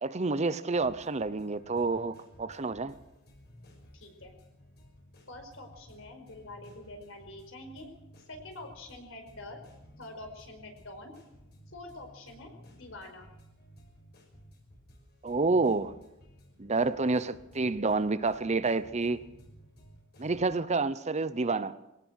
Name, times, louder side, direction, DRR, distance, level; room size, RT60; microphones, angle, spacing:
voice 1, 0.0-2.9 15.2-15.9 16.6-19.2 20.2-21.7, right 3 dB, 35° right, 0.8 m, -29 dB
sound 1, 0.7-20.5, equal, 55° left, 6.3 m, -55 dB
voice 2, 3.9-4.3 5.3-7.9 8.3-9.6 10.0-11.1 11.7-13.3, left 2 dB, 70° left, 5.0 m, -46 dB
23.0 x 18.0 x 6.4 m
head